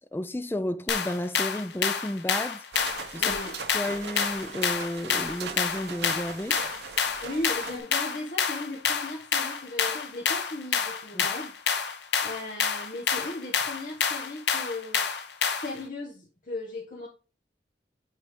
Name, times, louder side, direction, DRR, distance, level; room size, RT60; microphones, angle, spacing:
voice 1, 0.0-2.6 3.1-3.4 3.7-6.6 11.1-11.3, left 1 dB, 10° left, 0.4 m, -32 dB
sound 1, 0.9-15.8, left 6 dB, 80° left, 0.8 m, -28 dB
sound 2, 2.7-7.8, right 5 dB, 80° right, 1.0 m, -40 dB
voice 2, 3.2-3.5 3.8-3.9 7.2-11.5 12.2-15.0 15.4-17.1, left 2 dB, 50° left, 1.3 m, -37 dB
8.2 x 3.4 x 3.7 m
head